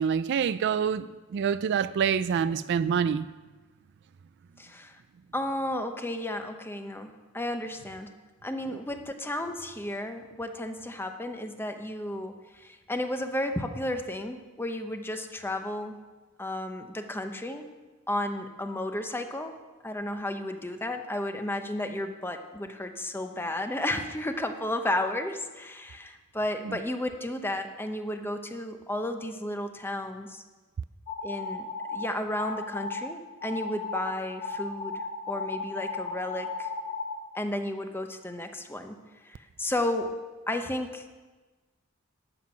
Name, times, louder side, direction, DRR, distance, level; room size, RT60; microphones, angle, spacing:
voice 1, 0.0-3.3 8.6-8.8 26.6-26.8, right 7 dB, 55° right, 15 dB, 0.3 m, -27 dB
voice 2, 4.6-5.0 5.3-8.1 8.4-16.0 16.4-17.7 18.1-19.6 19.8-30.4 31.2-31.7 31.9-36.7 37.3-39.0 39.2-40.1 40.5-41.0, left 1 dB, 10° left, 6 dB, 0.8 m, -33 dB
sound 1, 31.1-32.0 32.4-33.0 33.4-34.0 34.4-37.1, left 4 dB, 55° left, 3.3 m, -35 dB
11.5 x 7.9 x 5.9 m, 1.3 s
head